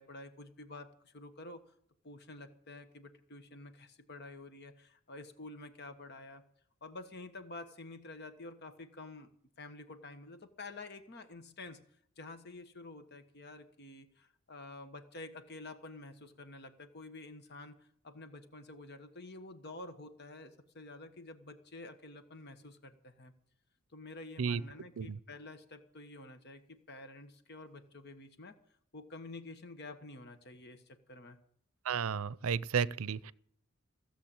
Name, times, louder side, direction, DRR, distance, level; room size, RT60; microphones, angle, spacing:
voice 1, 0.0-1.7 2.0-6.4 6.8-9.3 9.6-11.8 12.2-23.3 23.9-28.6 28.9-31.4, left 2 dB, 50° left, 1.3 m, -49 dB
voice 2, 31.9-33.3, right 6 dB, 80° right, 0.5 m, -33 dB
16.5 x 7.6 x 8.7 m
head